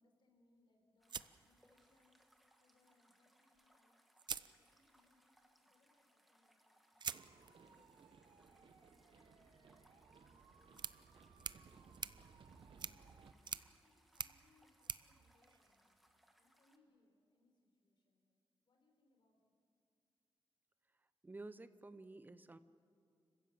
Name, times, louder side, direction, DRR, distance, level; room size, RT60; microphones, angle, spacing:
voice 1, 0.0-2.2 2.6-4.0 4.4-5.3 5.6-6.8 7.2-8.0 8.3-12.2 12.7-13.1 13.4-16.0 16.3-18.4 18.6-19.6, left 2 dB, 55° left, 3 dB, 4.3 m, -76 dB
sound 1, 1.0-16.8, equal, ahead, 1.5 m, -73 dB
sound 2, 1.1-2.2 3.6-3.7 4.2-5.2 7.0-16.2, right 7 dB, 50° right, 0.5 m, -50 dB
sound 3, 7.1-13.3, right 5 dB, 70° right, 1.2 m, -63 dB
voice 2, 21.0-22.6, right 2 dB, 20° right, 12 dB, 0.7 m, -53 dB
29.5 x 15.5 x 7.6 m, 2.5 s
wide cardioid pair, 165°, 9 cm